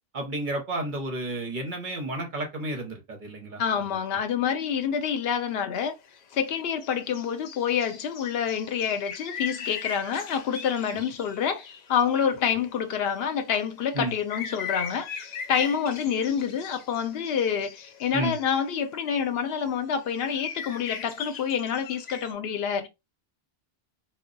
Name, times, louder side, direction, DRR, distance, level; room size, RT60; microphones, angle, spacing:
voice 1, 0.1-3.6 3.9-4.0 10.9-11.0 13.9-14.1 18.1-18.4, right 2 dB, 50° right, 1.0 m, -31 dB
voice 2, 3.6-5.9 6.3-22.9, left 7 dB, 75° left, 0.8 m, -27 dB
sound 1, 5.9-6.0 6.2-11.9 12.3-18.8 19.1-22.3, left 6 dB, 55° left, 0.5 m, -40 dB
2.3 x 2.2 x 3.8 m
omnidirectional pair, 1.1 m